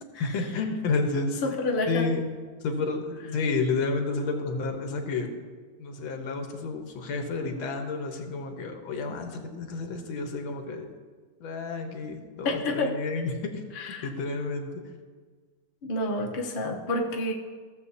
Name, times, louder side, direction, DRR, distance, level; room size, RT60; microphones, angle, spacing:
voice 1, 0.2-1.4 1.9-2.3 2.6-5.3 5.8-10.9 11.4-13.6 14.0-14.8, left 3 dB, 85° left, 4 dB, 1.8 m, -30 dB
voice 2, 1.4-2.1 12.4-12.9 13.7-14.1 15.8-17.3, left 2 dB, 40° left, 0 dB, 0.8 m, -29 dB
15.5 x 7.4 x 2.8 m, 1.5 s
omnidirectional pair, 2.2 m